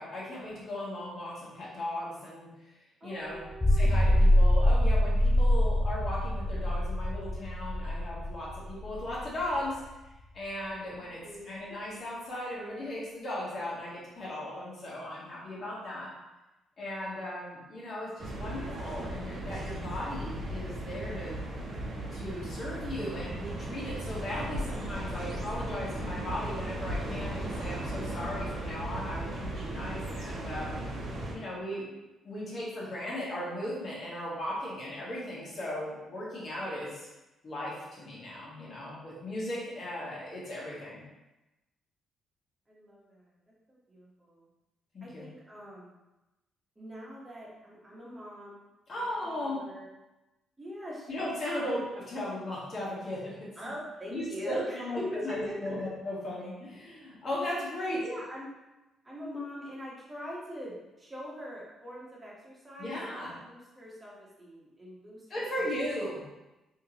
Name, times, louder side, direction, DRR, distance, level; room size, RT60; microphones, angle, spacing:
voice 1, 0.0-2.5 3.0-3.4 3.7-9.8 10.3-11.2 11.4-16.1 16.8-21.4 22.1-30.8 31.3-31.8 32.2-37.1 37.4-41.0 44.9-45.3 48.9-49.6 51.1-51.8 52.1-53.5 54.1-58.0 62.8-63.3 65.3-66.2, left 1 dB, 45° left, -6 dB, 1.4 m, -37 dB
voice 2, 3.0-3.8 11.2-11.4 42.7-43.4 43.7-44.5 45.0-46.0 46.8-48.6 48.9-49.9 50.6-51.2 51.6-51.8 53.6-55.9 57.9-58.5 59.0-63.0 63.4-65.6, equal, 20° right, -5 dB, 1.2 m, -42 dB
sound 1, 3.5-9.9, left 1 dB, 15° left, 0.5 m, -25 dB
sound 2, 18.2-31.3, right 1 dB, 55° right, 0.7 m, -36 dB
3.5 x 2.9 x 2.9 m, 1.0 s
cardioid pair, 90°, 0 cm